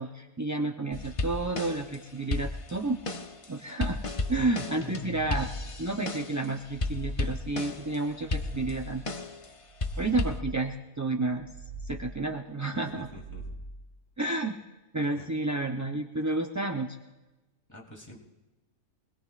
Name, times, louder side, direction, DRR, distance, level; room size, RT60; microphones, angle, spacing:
voice 1, 0.0-3.0 3.5-4.0 4.3-5.5 5.8-9.0 10.0-11.5 11.8-13.1 14.2-14.6 14.9-16.9, right 2 dB, 30° right, 2 dB, 0.3 m, -30 dB
sound 1, 0.9-2.0 2.3-6.5 6.8-8.0 8.3-9.5 9.8-10.4, left 3 dB, 30° left, 0.6 m, -34 dB
sound 2, 4.8-5.9 6.4-7.5 8.0-9.1 9.6-10.7 11.2-12.3 12.8-13.9, right 2 dB, 80° right, 4.2 m, -43 dB
voice 2, 12.7-13.4 15.1-15.3 17.7-18.2, left 1 dB, 10° left, -3 dB, 3.0 m, -48 dB
24.5 x 20.0 x 2.5 m, 1.1 s
omnidirectional pair, 1.5 m